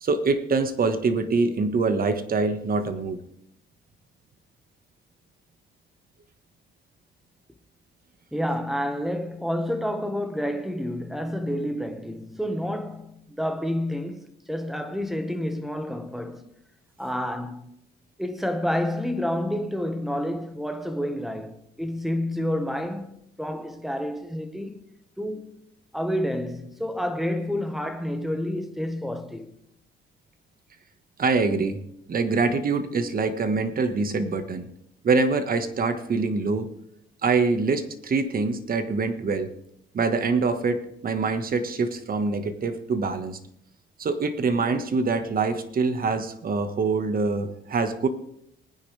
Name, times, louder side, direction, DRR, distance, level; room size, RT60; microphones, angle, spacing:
voice 1, 0.0-3.2 31.2-31.8 32.1-34.7 35.0-36.7 37.2-39.5 39.9-43.4 44.0-48.1, right 4 dB, 45° right, 1.6 m, -24 dB
voice 2, 8.3-16.5 17.0-17.8 18.2-24.8 25.2-25.5 25.9-29.5, equal, ahead, 1.4 m, -29 dB
20.0 x 10.0 x 3.4 m
cardioid pair, 90°, 20 cm